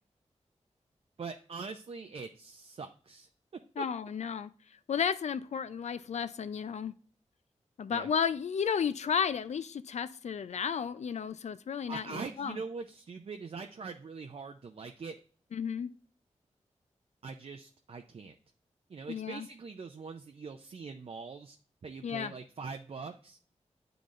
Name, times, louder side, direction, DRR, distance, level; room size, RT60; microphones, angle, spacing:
voice 1, 1.2-3.3 3.8-3.9 7.9-8.1 11.9-15.1 17.2-18.4 18.9-21.6 21.8-23.4, right 4 dB, 55° right, 6 dB, 0.5 m, -42 dB
voice 2, 3.8-4.5 4.9-6.9 7.8-12.6 15.5-15.9 19.1-19.5 22.0-22.3, left 7 dB, 70° left, 14 dB, 0.4 m, -33 dB
10.0 x 3.9 x 2.4 m, 0.43 s
wide cardioid pair, 105°, 12 cm